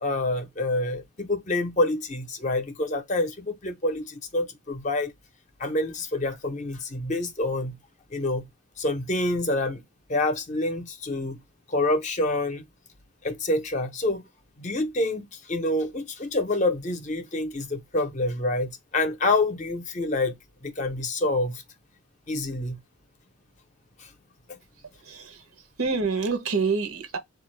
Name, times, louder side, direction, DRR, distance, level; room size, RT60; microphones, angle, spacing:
voice 1, 0.0-5.1 5.6-7.8 8.1-8.4 8.8-9.8 10.1-11.4 11.7-12.6 13.2-14.2 14.6-20.3 20.6-21.6 22.3-22.8 24.0-24.1 24.5-24.6, left 2 dB, 35° left, 0.6 m, -27 dB
voice 2, 25.0-27.2, right 4 dB, 80° right, 0.8 m, -28 dB
4.2 x 2.4 x 3.1 m
head